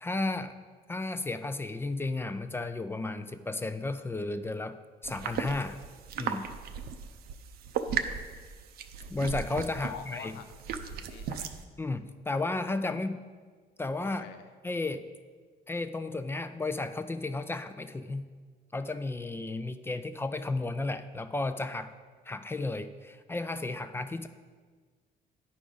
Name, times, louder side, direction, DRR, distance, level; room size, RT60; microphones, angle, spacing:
voice 1, 0.0-0.5 0.9-4.8 5.0-5.8 6.2-6.4 9.1-10.3 11.8-13.2 13.8-14.2 14.6-15.0 15.7-18.2 18.7-21.9 22.3-24.3, left 2 dB, 15° left, 10 dB, 0.3 m, -33 dB
sound 1, 5.0-11.6, right 7 dB, 65° right, 0.5 m, -37 dB
voice 2, 9.8-11.5 14.0-14.5, left 8 dB, 85° left, 9 dB, 0.5 m, -46 dB
9.8 x 4.9 x 3.9 m, 1.5 s
cardioid pair, 110°, 17 cm